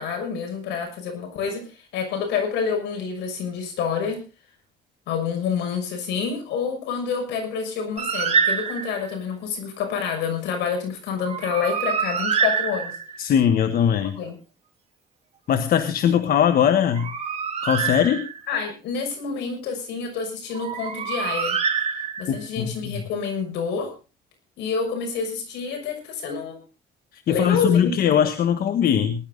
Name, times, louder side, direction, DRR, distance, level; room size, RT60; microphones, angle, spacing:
voice 1, 0.0-1.7 1.9-4.2 5.1-12.9 14.1-14.4 18.5-21.6 22.2-23.9 24.6-26.6 27.3-28.2, left 6 dB, 85° left, 5 dB, 6.2 m, -28 dB
Bird, 8.0-9.1 11.2-13.3 16.7-18.6 20.5-22.5, right 6 dB, 40° right, 3.4 m, -26 dB
voice 2, 13.2-14.2 15.5-17.1 17.6-18.3 22.3-23.0 27.1-29.3, left 9 dB, 60° left, 9 dB, 1.3 m, -21 dB
19.0 x 11.5 x 3.9 m, 0.32 s
cardioid pair, 115°, 18 cm